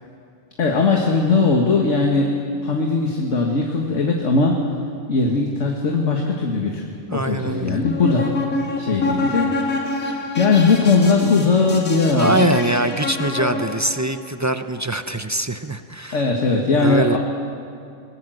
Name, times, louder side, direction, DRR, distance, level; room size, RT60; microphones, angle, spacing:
voice 1, 0.6-2.3 2.6-4.6 5.1-6.8 7.1-8.3 8.6-12.6 13.4-13.6 16.1-17.2, left 4 dB, 60° left, 1 dB, 2.0 m, -19 dB
voice 2, 7.1-7.8 12.1-16.3 16.7-17.2, right 2 dB, 30° right, 9 dB, 0.3 m, -23 dB
sound 1, 7.7-14.0, left 3 dB, 85° left, 3.5 m, -27 dB
21.0 x 20.0 x 7.8 m, 2.5 s
omnidirectional pair, 1.4 m